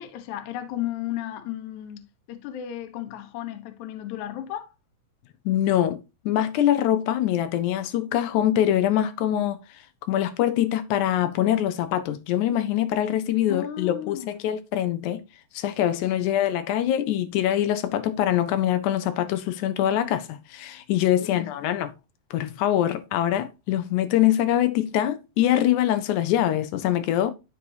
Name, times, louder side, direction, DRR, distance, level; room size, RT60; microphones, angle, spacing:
voice 1, 0.0-4.8 13.5-14.3 21.2-21.6, left 12 dB, 70° left, 1.9 m, -34 dB
voice 2, 5.4-6.0 6.2-9.6 10.1-15.2 15.5-21.9 22.3-27.3, left 11 dB, 90° left, 1.7 m, -24 dB
12.5 x 4.2 x 2.7 m
omnidirectional pair, 4.3 m